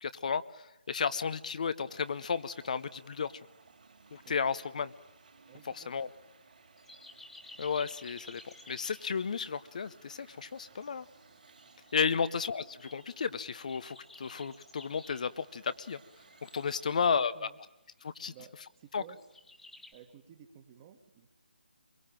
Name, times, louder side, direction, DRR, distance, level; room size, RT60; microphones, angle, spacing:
voice 1, 0.0-3.3 4.1-4.9 5.7-6.1 7.6-11.1 11.9-16.0 16.4-17.5 18.0-18.3 18.9-19.0, left 6 dB, 45° left, 13 dB, 0.8 m, -33 dB
sound 1, 1.9-17.3, right 4 dB, 55° right, 4.5 m, -60 dB
voice 2, 5.5-6.1 12.1-12.3 16.8-17.6 18.3-19.2 19.9-21.3, right 9 dB, 25° right, 8 dB, 1.9 m, -55 dB
sound 2, 6.8-9.2 9.4-9.6 9.9-10.0 10.7-12.3 12.7-15.4 15.8-17.6 17.9-18.6 19.0-19.9, left 2 dB, 5° left, 1.5 m, -54 dB
25.0 x 23.0 x 9.0 m, 0.96 s
figure-of-eight pair, 155°, 5 cm